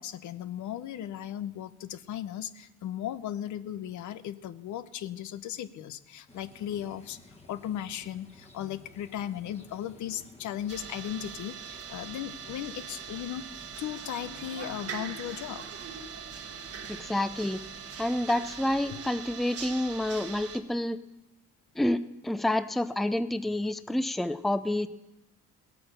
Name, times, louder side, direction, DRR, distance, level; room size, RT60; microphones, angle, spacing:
voice 1, 0.0-13.4 13.8-15.7 18.9-19.0, left 11 dB, 75° left, 13 dB, 0.7 m, -37 dB
sound 1, 6.3-19.1, left 2 dB, 20° left, 1.4 m, -54 dB
sound 2, 10.7-20.6, right 7 dB, 50° right, 1.3 m, -42 dB
voice 2, 16.9-17.6 18.0-21.0 21.8-24.9, left 1 dB, ahead, 12 dB, 0.5 m, -28 dB
16.5 x 8.6 x 6.5 m, 0.96 s
cardioid pair, 90°, 30 cm